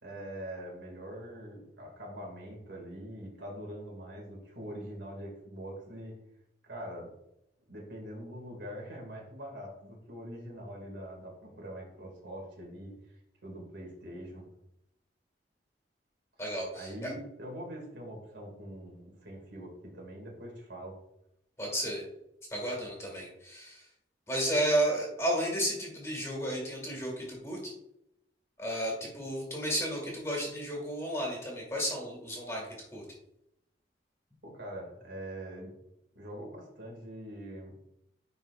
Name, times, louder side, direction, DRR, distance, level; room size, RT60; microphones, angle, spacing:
voice 1, 0.0-6.2 6.6-7.1 7.7-14.4 16.7-21.0 34.4-35.7 36.1-37.7, equal, 75° right, -2 dB, 2.3 m, -43 dB
voice 2, 16.4-17.1 21.6-22.0 22.5-23.9 24.3-27.7 28.6-33.0, right 1 dB, 15° left, -2 dB, 1.9 m, -33 dB
10.5 x 4.5 x 2.5 m, 0.82 s
head